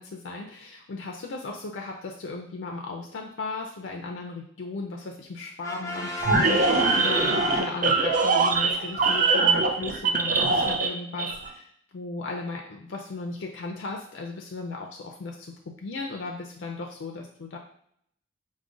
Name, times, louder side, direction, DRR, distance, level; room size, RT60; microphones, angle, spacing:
voice 1, 0.0-11.7 11.9-17.6, left 3 dB, 75° left, 1 dB, 0.4 m, -36 dB
Brass instrument, 5.6-8.3, left 2 dB, 20° left, 0.7 m, -33 dB
sound 1, 6.2-10.9 11.2-11.5, right 4 dB, 45° right, 0.5 m, -22 dB
4.9 x 2.1 x 3.7 m, 0.68 s
head